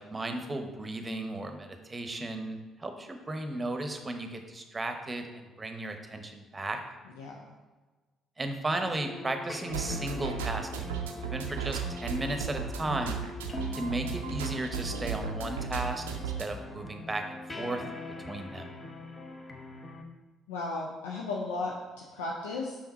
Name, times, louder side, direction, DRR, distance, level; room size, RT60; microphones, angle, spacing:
voice 1, 0.0-6.8 8.4-10.9 11.2-13.2 13.8-17.8 18.2-18.7, right 2 dB, 25° right, 6 dB, 0.9 m, -35 dB
voice 2, 7.2-7.5 20.5-22.8, left 3 dB, 75° left, -2 dB, 0.6 m, -35 dB
sound 1, 8.7-20.0, left 2 dB, 30° left, 0.8 m, -43 dB
sound 2, 9.7-16.5, right 6 dB, 80° right, 0.5 m, -35 dB
5.8 x 5.0 x 4.1 m, 1.3 s
figure-of-eight pair, 45°, 0 cm